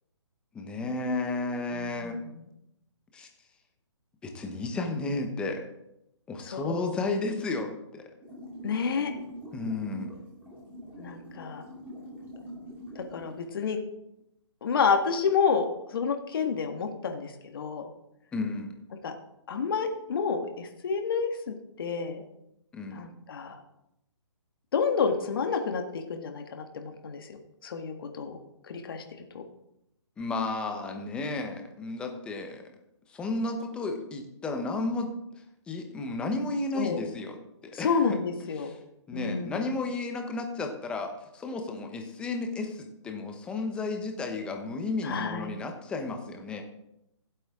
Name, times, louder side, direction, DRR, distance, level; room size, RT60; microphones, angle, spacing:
voice 1, 0.5-2.2 3.1-3.3 4.2-5.6 6.3-8.0 9.5-10.1 18.3-18.7 22.7-23.0 30.2-32.6 33.1-35.1 35.7-37.4 37.6-37.9 38.6-38.7 39.1-46.6, left 3 dB, 5° left, 4 dB, 0.9 m, -33 dB
voice 2, 1.7-2.3 6.5-6.9 8.6-9.1 11.0-11.6 12.9-13.8 14.6-17.9 19.0-19.1 19.5-22.2 22.9-23.6 24.7-28.4 28.6-29.4 36.7-37.0 37.7-38.7 39.1-39.5 45.0-45.5, left 5 dB, 50° left, 5 dB, 1.7 m, -29 dB
sound 1, 8.2-13.4, equal, 10° right, 3.1 m, -43 dB
15.5 x 7.8 x 3.7 m, 0.83 s
hypercardioid pair, 160°, 15 cm